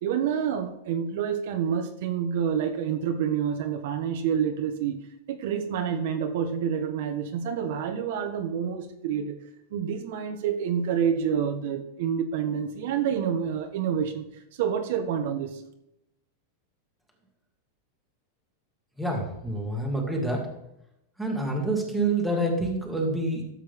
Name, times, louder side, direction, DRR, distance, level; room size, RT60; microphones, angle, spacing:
voice 1, 0.0-5.0 5.3-9.4 9.7-14.3 14.6-15.6, right 8 dB, 60° right, 6 dB, 1.2 m, -28 dB
voice 2, 19.0-20.5 21.2-23.4, right 2 dB, ahead, -1 dB, 2.0 m, -27 dB
13.0 x 7.6 x 3.6 m, 0.81 s
supercardioid pair, 165°, 0 cm